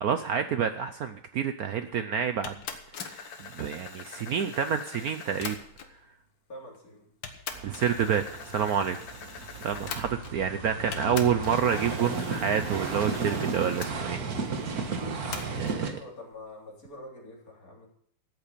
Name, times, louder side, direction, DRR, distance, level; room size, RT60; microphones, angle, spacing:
voice 1, 0.0-2.6 2.9-5.6 7.6-9.0 9.3-14.2 15.5-16.0, right 7 dB, 80° right, 9 dB, 0.8 m, -28 dB
sound 1, 2.4-6.0 6.7-6.8 7.2-10.5 10.9-13.9 15.3-15.8, left 6 dB, 65° left, 1.9 m, -42 dB
voice 2, 6.5-7.1 15.9-17.9, left 1 dB, 40° left, -2 dB, 4.0 m, -45 dB
sound 2, 7.5-15.9, right 4 dB, 50° right, 1.7 m, -34 dB
13.5 x 8.3 x 6.7 m, 0.65 s
omnidirectional pair, 2.3 m